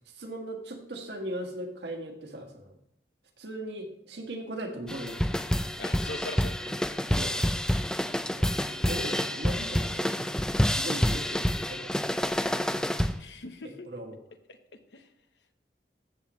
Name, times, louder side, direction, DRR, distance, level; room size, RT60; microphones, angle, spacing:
voice 1, 0.2-2.7 3.4-5.4 6.6-6.7 7.1-7.7 8.2-10.4 10.8-12.0 13.6-14.2, right 1 dB, 75° right, 3 dB, 1.7 m, -39 dB
sound 1, 4.9-13.2, equal, 5° left, 0.3 m, -28 dB
voice 2, 5.8-6.5 13.2-13.9 14.5-14.6 14.9-15.1, left 2 dB, 80° left, 7 dB, 1.0 m, -40 dB
14.0 x 7.6 x 3.2 m, 0.76 s
head